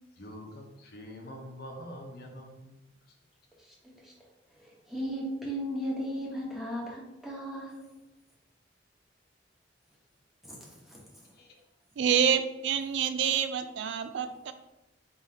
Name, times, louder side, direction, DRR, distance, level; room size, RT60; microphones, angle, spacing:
voice 1, 0.2-2.9 11.3-11.5, equal, 55° left, 1 dB, 0.8 m, -45 dB
voice 2, 3.6-4.1 4.5-7.9 10.4-11.3, equal, ahead, -5 dB, 1.1 m, -37 dB
voice 3, 12.0-14.5, right 8 dB, 70° right, 10 dB, 0.3 m, -27 dB
4.3 x 3.7 x 2.8 m, 0.95 s
head